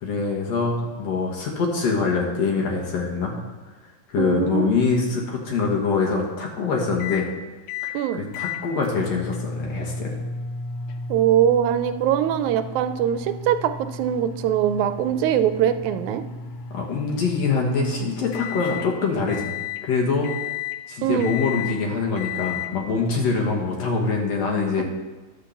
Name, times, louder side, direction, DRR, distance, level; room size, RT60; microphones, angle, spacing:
voice 1, 0.0-3.3 4.1-7.3 7.8-10.2 16.7-19.5 19.8-20.3 20.9-24.8, left 4 dB, 65° left, 0 dB, 2.3 m, -24 dB
voice 2, 4.2-4.7 7.9-8.2 11.1-16.2 21.0-21.3 24.8-24.9, right 10 dB, 85° right, 10 dB, 2.0 m, -22 dB
sound 1, 7.0-7.3 7.7-8.0 8.3-18.9 19.3-19.8 20.2-20.8 21.2-21.8 22.2-22.7, left 5 dB, 85° left, 2.0 m, -33 dB
10.0 x 4.6 x 7.0 m, 1.2 s
omnidirectional pair, 3.3 m